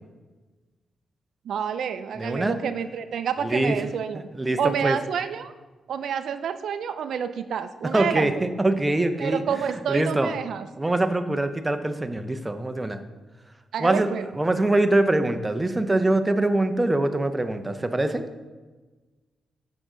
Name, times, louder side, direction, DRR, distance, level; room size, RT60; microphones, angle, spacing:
voice 1, 1.5-4.2 4.6-5.5 5.9-8.3 9.2-10.7 13.7-14.3, right 7 dB, 80° right, 11 dB, 0.3 m, -28 dB
voice 2, 2.2-2.6 3.4-3.8 4.3-5.0 7.9-9.4 9.9-10.3 10.8-13.0 13.8-14.1 14.4-18.2, right 2 dB, 15° right, 8 dB, 0.6 m, -23 dB
7.7 x 6.1 x 3.7 m, 1.3 s
cardioid pair, 100°, 0 cm